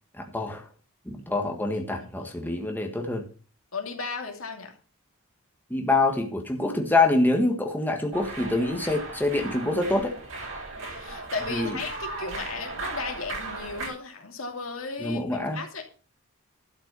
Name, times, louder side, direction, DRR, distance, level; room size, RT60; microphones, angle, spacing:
voice 1, 0.2-0.6 1.0-3.3 5.7-10.1 11.5-11.8 15.0-15.6, left 2 dB, 10° left, 2 dB, 1.6 m, -25 dB
voice 2, 3.7-4.7 10.9-15.2 15.5-15.8, left 4 dB, 70° left, 3 dB, 2.7 m, -35 dB
sound 1, 8.1-13.9, right 3 dB, 65° right, 7.8 m, -37 dB
12.0 x 5.9 x 6.8 m, 0.37 s
head